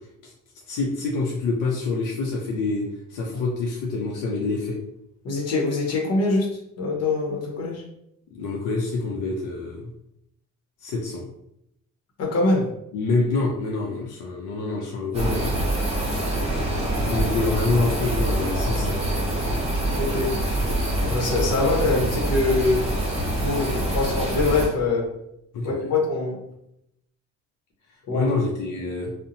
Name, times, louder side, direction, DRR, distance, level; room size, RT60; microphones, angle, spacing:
voice 1, 0.7-4.8 8.3-9.9 10.8-11.3 12.9-15.6 17.1-19.0 25.5-25.8 28.1-29.1, left 3 dB, 85° left, -1 dB, 0.5 m, -26 dB
voice 2, 5.2-7.8 12.2-12.7 19.9-20.4 21.0-22.9 23.4-25.1 25.6-26.5 28.1-28.3, left 3 dB, 55° left, -1 dB, 0.9 m, -24 dB
sound 1, 15.1-24.7, right 1 dB, 20° right, 1.0 m, -25 dB
2.7 x 2.1 x 2.6 m, 0.78 s
cardioid pair, 90°, 30 cm